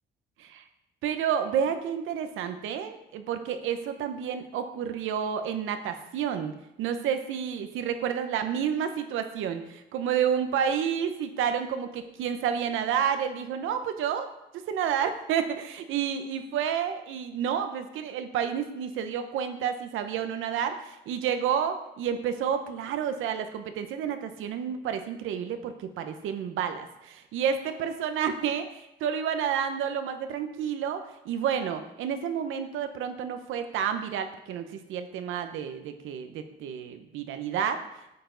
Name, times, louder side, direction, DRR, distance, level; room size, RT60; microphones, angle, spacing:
voice 1, 1.0-37.8, right 8 dB, 90° right, 8 dB, 0.9 m, -30 dB
9.2 x 6.8 x 3.9 m, 0.87 s
cardioid pair, 90°, 20 cm